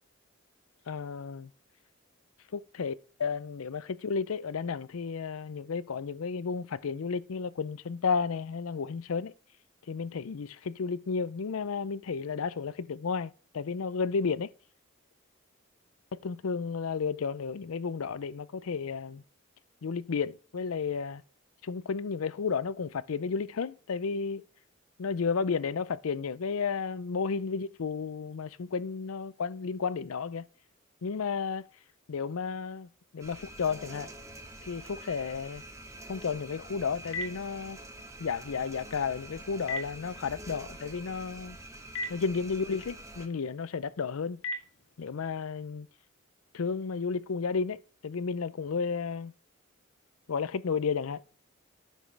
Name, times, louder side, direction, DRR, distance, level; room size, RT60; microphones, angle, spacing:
voice 1, 0.9-1.5 2.5-9.3 9.9-14.5 16.1-19.2 19.8-21.2 21.6-24.4 25.0-30.4 31.0-31.6 32.1-34.1 34.6-35.6 36.1-37.8 38.2-41.6 42.1-44.4 45.0-45.9 46.5-49.3 50.3-51.3, left 5 dB, 85° left, 0.5 m, -32 dB
sound 1, 33.2-43.3, right 1 dB, 15° right, 1.2 m, -46 dB
Telephone, 36.4-45.3, left 1 dB, 65° left, 2.3 m, -43 dB
10.0 x 7.3 x 3.3 m
head